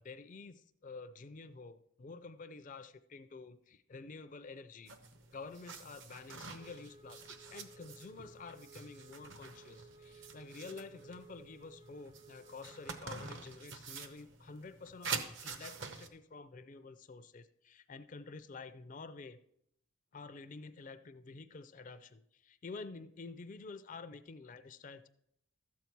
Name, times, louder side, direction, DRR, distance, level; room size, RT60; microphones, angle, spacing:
voice 1, 0.0-4.9 5.3-19.4 20.1-25.1, left 4 dB, 35° left, 11 dB, 0.4 m, -49 dB
sound 1, 4.9-16.1, right 5 dB, 55° right, 0.9 m, -47 dB
Wind instrument woodwind instrument, 6.6-13.0, right 2 dB, 30° right, 0.6 m, -59 dB
12.5 x 8.2 x 4.5 m, 0.75 s
head